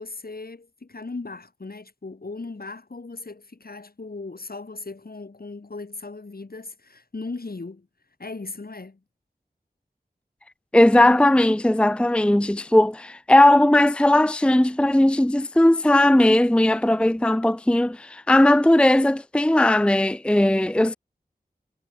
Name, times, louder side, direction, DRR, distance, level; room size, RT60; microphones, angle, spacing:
voice 1, 0.0-7.9 8.2-9.0, left 3 dB, 65° left, 6.2 m, -37 dB
voice 2, 10.7-21.0, left 1 dB, 5° left, 0.5 m, -18 dB
wide cardioid pair, 55°, 16 cm